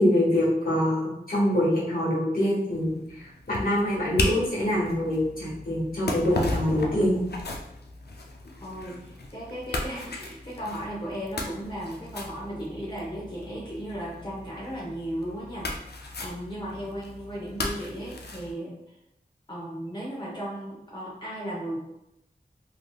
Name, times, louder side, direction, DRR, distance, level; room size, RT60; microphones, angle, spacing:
voice 1, 0.0-7.2, left 1 dB, 60° left, -7 dB, 1.4 m, -25 dB
sound 1, 2.7-18.5, left 2 dB, 80° left, 0.5 m, -36 dB
voice 2, 8.6-15.7 16.2-19.0 19.5-21.8, equal, 30° left, -6 dB, 0.8 m, -36 dB
3.4 x 2.7 x 2.3 m, 0.84 s
wide cardioid pair, 60°, 17 cm